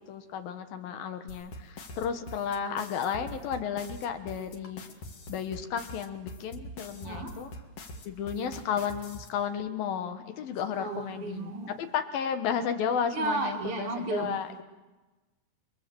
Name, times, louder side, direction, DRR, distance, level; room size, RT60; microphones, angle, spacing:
voice 1, 0.0-4.8 5.3-7.5 8.1-14.6, left 7 dB, 65° left, 2.8 m, -33 dB
sound 1, 1.3-9.3, left 1 dB, 50° left, 2.2 m, -43 dB
voice 2, 7.0-7.4 10.7-11.8 13.1-14.4, right 3 dB, 40° right, 2.3 m, -33 dB
29.5 x 22.0 x 7.7 m
omnidirectional pair, 5.0 m